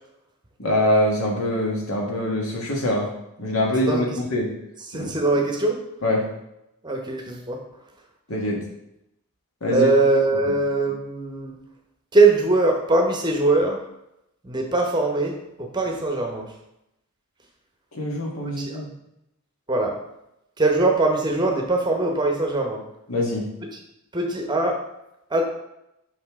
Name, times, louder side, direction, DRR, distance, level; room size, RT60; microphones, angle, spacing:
voice 1, 0.6-3.1 3.4-4.5 4.9-5.1 6.0-6.2 8.3-8.6 9.6-9.9 17.9-18.9 23.1-23.4, left 1 dB, 75° left, -2 dB, 1.6 m, -23 dB
voice 2, 3.9-4.2 4.9-5.8 6.8-7.6 9.7-11.6 12.1-13.8 14.4-16.5 18.6-18.8 19.7-20.0 20.6-22.8 24.1-24.8 25.3-25.4, right 2 dB, 20° right, 2 dB, 0.8 m, -21 dB
5.6 x 5.2 x 3.6 m, 0.85 s
head